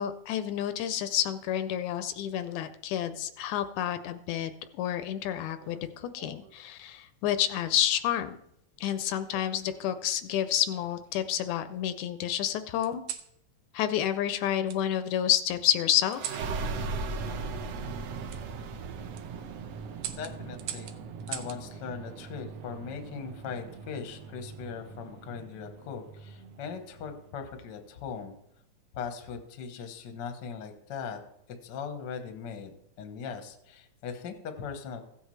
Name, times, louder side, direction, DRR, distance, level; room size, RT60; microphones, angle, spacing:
voice 1, 0.0-4.5 4.8-5.8 6.1-8.4 8.8-13.0 13.7-16.4, left 11 dB, 80° left, 11 dB, 1.9 m, -29 dB
sound 1, 5.5-6.6 7.6-8.0 9.3-10.1 10.7-11.6 12.8-13.3 14.7-14.8 16.1-16.5 18.3-18.4 19.0-19.2 20.0-21.6 23.1-23.5, right 10 dB, 90° right, 2.2 m, -42 dB
sound 2, 16.0-27.3, right 4 dB, 70° right, 1.7 m, -39 dB
voice 2, 20.1-21.0 21.3-28.3 28.9-31.2 31.6-35.0, left 6 dB, 60° left, 6 dB, 1.1 m, -39 dB
15.5 x 8.1 x 3.2 m, 0.77 s
omnidirectional pair, 3.5 m